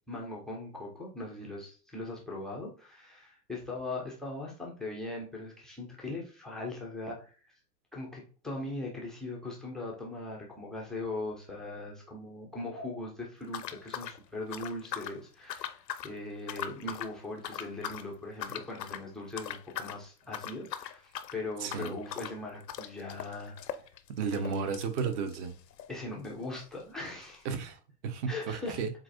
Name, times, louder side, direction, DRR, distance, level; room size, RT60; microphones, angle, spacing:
voice 1, 0.1-7.3 7.9-23.5 24.2-24.7 25.9-27.5 28.3-28.8, left 2 dB, ahead, 0.3 m, -40 dB
sound 1, 13.5-15.2 15.5-16.1 16.4-17.1 17.4-18.1 18.4-19.1 19.4-20.0 20.3-25.9 26.2-26.3 26.5-26.6 27.3-27.4, left 10 dB, 80° left, 0.6 m, -40 dB
voice 2, 21.6-21.9 24.1-25.5 27.4-28.9, right 6 dB, 45° right, 0.8 m, -33 dB
7.3 x 2.5 x 2.6 m
figure-of-eight pair, 95°, 49 cm